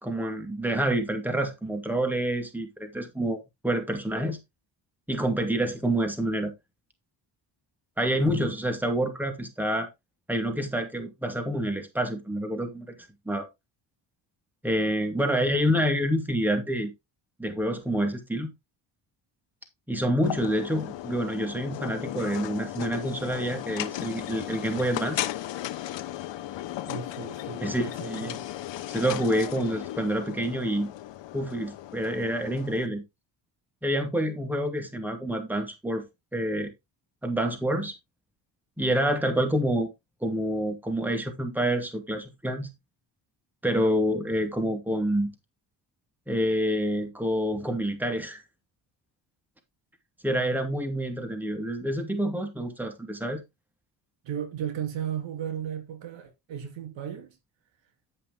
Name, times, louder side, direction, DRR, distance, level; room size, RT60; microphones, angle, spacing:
voice 1, 0.0-4.4 5.1-6.5 8.0-9.9 10.3-12.9 13.3-13.5 14.6-16.9 17.4-18.5 19.9-25.2 27.6-28.3 28.9-30.9 31.3-33.0 33.8-36.0 36.3-36.7 37.2-37.9 38.8-39.9 40.2-42.7 43.6-45.3 46.3-48.4 50.2-53.4, right 1 dB, 5° right, 2.4 m, -27 dB
voice 2, 8.1-8.4 26.9-28.5 54.2-57.4, right 9 dB, 75° right, 2.5 m, -35 dB
sound 1, 20.2-32.9, left 13 dB, 70° left, 1.0 m, -36 dB
11.0 x 5.6 x 3.7 m
cardioid pair, 90°, 45 cm